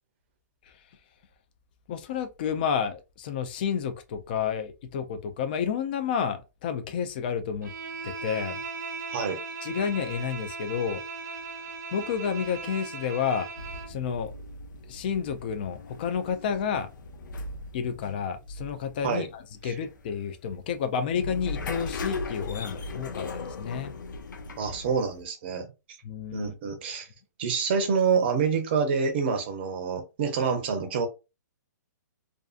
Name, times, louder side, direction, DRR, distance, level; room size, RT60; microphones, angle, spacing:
voice 1, 1.9-7.7 8.0-8.6 9.6-11.0 11.9-13.5 13.9-14.3 14.9-16.9 17.7-23.9 26.0-26.5, left 7 dB, 30° left, 0.3 m, -30 dB
Bowed string instrument, 7.6-14.0, right 4 dB, 75° right, 0.7 m, -38 dB
sound 1, 13.6-25.2, left 3 dB, 85° left, 0.5 m, -39 dB
voice 2, 24.6-25.7 26.3-27.1 27.4-31.1, right 5 dB, 35° right, 0.6 m, -27 dB
2.5 x 2.4 x 2.4 m
hypercardioid pair, 165°, 10 cm